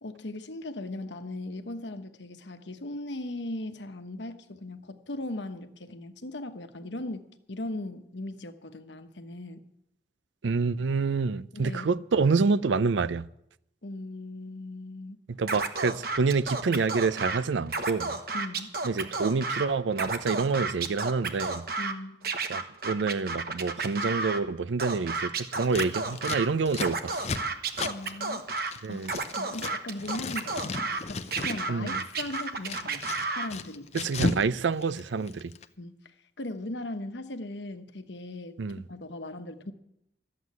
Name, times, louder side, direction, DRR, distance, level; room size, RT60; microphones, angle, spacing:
voice 1, 0.0-9.6 11.5-11.9 13.8-15.2 18.3-18.7 21.8-22.3 27.9-28.6 28.9-29.0 29.3-33.1 33.4-33.9 35.8-38.6 38.9-39.7, left 2 dB, 80° left, 1.1 m, -38 dB
voice 2, 10.4-13.2 15.3-18.1 18.8-21.6 22.5-27.2 28.8-29.1 31.7-32.0 33.9-35.5 38.6-38.8, right 4 dB, 90° right, 0.5 m, -27 dB
Scratching (performance technique), 15.5-17.4 17.7-19.7 19.9-21.9 22.2-24.4 24.8-26.5 26.8-28.7 29.0-31.0 31.3-33.5, right 3 dB, 55° right, 1.1 m, -31 dB
Scissors, 25.6-29.7 30.0-31.6 31.9-34.5 34.7-35.6, left 3 dB, 35° left, 0.6 m, -35 dB
13.5 x 7.8 x 9.4 m
head